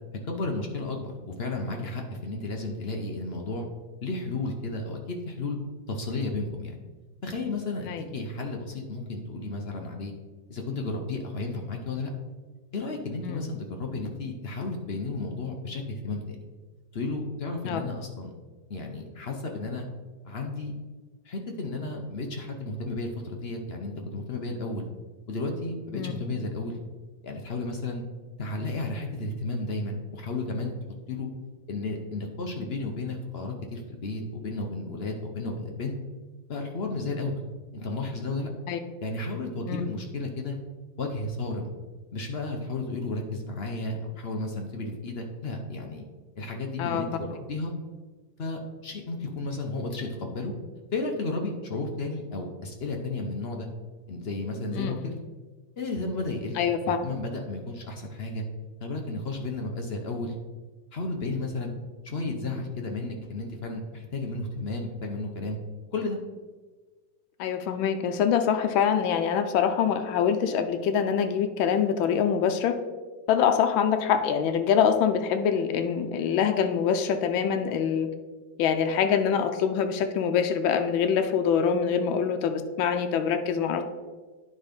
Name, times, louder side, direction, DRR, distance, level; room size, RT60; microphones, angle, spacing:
voice 1, 0.3-3.6 4.0-5.6 5.9-6.8 7.2-10.1 10.5-12.1 12.7-16.4 16.9-18.3 18.7-19.9 20.2-20.8 21.2-24.9 25.3-26.8 27.2-28.0 28.4-30.7 31.1-31.3 31.7-36.0 36.5-37.4 37.7-38.5 39.0-40.6 41.0-41.7 42.1-46.0 46.4-47.7 48.4-50.5 50.9-53.7 54.1-55.2 55.8-58.4 58.8-60.3 60.9-61.7 62.0-65.6 65.9-66.2, left 2 dB, 60° left, 2 dB, 0.6 m, -33 dB
voice 2, 56.6-57.0 67.4-72.7 73.3-78.1 78.6-83.8, left 7 dB, 90° left, 6 dB, 1.4 m, -25 dB
9.7 x 3.9 x 5.1 m, 1.3 s
omnidirectional pair, 2.1 m